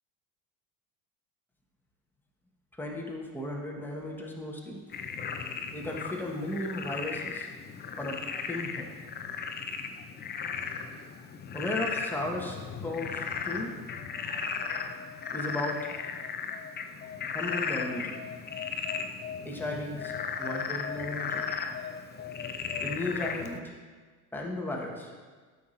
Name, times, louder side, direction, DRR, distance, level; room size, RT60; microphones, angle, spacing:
voice 1, 2.8-4.8 5.7-7.5 8.0-8.2 8.5-8.9 11.5-12.6 12.8-13.7 14.4-15.0 15.3-15.9 17.3-18.2 19.4-20.1 20.4-21.5 22.8-23.7 24.3-25.1, left 1 dB, 5° left, -2 dB, 1.5 m, -35 dB
Frog, 4.9-23.6, left 6 dB, 20° left, 0.6 m, -36 dB
13.0 x 6.0 x 2.7 m, 1.5 s
figure-of-eight pair, 70°, 46 cm